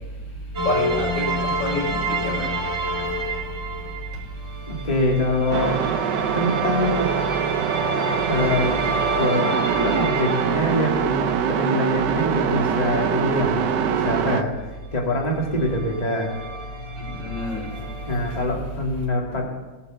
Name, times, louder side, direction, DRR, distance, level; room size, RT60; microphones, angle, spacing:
sound 1, 0.5-11.3 15.0-15.1 15.3-18.5, right 1 dB, 35° right, 1.9 m, -29 dB
voice 1, 0.6-2.5 16.9-17.7, left 1 dB, 70° left, -3 dB, 5.0 m, -27 dB
voice 2, 4.7-5.8 6.3-7.1 8.3-8.7 9.2-14.5 14.9-16.3 18.1-19.4, left 1 dB, 20° left, -1 dB, 2.1 m, -24 dB
sound 2, 5.5-14.4, right 8 dB, 70° right, 1.4 m, -24 dB
17.5 x 8.4 x 7.5 m, 1.2 s
omnidirectional pair, 2.1 m